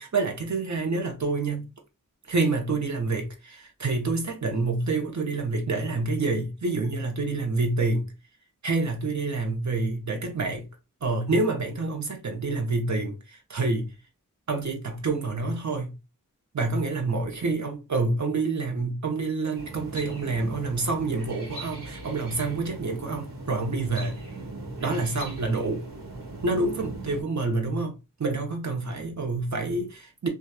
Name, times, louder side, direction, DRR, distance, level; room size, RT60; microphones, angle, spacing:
voice 1, 0.0-1.7 2.3-8.1 8.6-10.7 11.0-13.9 14.5-15.9 16.5-24.2 24.8-25.8 26.4-30.3, right 3 dB, 55° right, 0.8 m, -27 dB
sound 1, 19.5-27.2, right 2 dB, 75° right, 1.3 m, -40 dB
2.8 x 2.4 x 2.3 m
cardioid pair, 45°, 35 cm